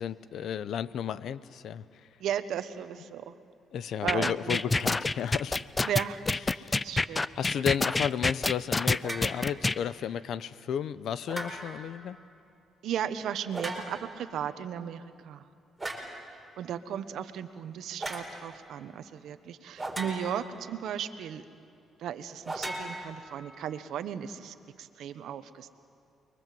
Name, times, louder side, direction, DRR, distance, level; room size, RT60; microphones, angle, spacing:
voice 1, 0.0-1.8 3.7-5.6 6.5-6.8 7.4-12.2, left 8 dB, 70° left, 16 dB, 0.8 m, -33 dB
voice 2, 2.2-3.3 4.0-4.6 5.8-6.2 6.7-7.2 12.8-15.4 16.6-21.4 22.0-25.7, right 9 dB, 75° right, 10 dB, 1.2 m, -35 dB
sound 1, 4.1-9.8, left 3 dB, 20° left, 0.6 m, -27 dB
sound 2, 9.0-9.4 11.3-11.9 13.5-14.2 15.8-16.2 18.0-18.3 19.8-20.5 22.4-23.6, right 1 dB, 10° right, 4.5 m, -37 dB
29.5 x 22.5 x 7.8 m, 2.6 s
cardioid pair, 90°, 0 cm